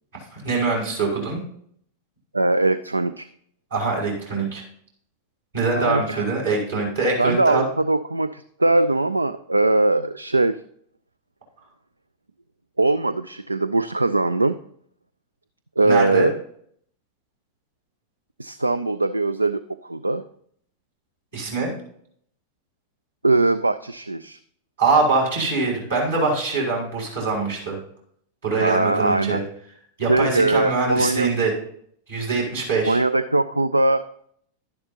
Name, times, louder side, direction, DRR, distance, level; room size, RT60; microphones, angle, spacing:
voice 1, 0.3-1.4 3.7-4.6 5.5-7.6 15.8-16.3 21.3-21.7 24.8-27.8 28.4-29.4 30.0-31.5 32.1-33.0, right 3 dB, 65° right, -4 dB, 5.2 m, -23 dB
voice 2, 2.3-3.3 5.7-6.2 7.2-10.6 12.8-14.6 15.8-16.3 18.4-20.2 23.2-24.4 28.6-29.4 30.1-31.3 32.9-34.0, right 2 dB, 80° right, 14 dB, 0.3 m, -21 dB
12.0 x 10.5 x 2.9 m, 0.65 s
figure-of-eight pair, 90°, 0 cm